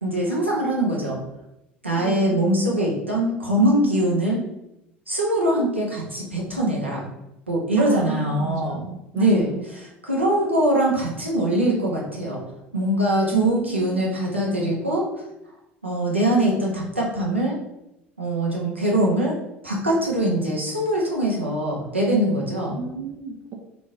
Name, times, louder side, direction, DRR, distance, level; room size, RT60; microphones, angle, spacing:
voice 1, 0.0-1.2 1.8-4.4 5.1-7.1 7.5-8.9 9.1-12.4 12.7-15.1 15.8-17.5 18.2-19.3 19.6-22.8, right 1 dB, 90° right, -4 dB, 1.1 m, -22 dB
voice 2, 2.0-2.5 7.8-9.7 13.3-14.1 22.7-23.5, right 7 dB, 45° right, 2 dB, 0.6 m, -32 dB
3.8 x 3.7 x 3.7 m, 0.88 s
figure-of-eight pair, 70°, 6 cm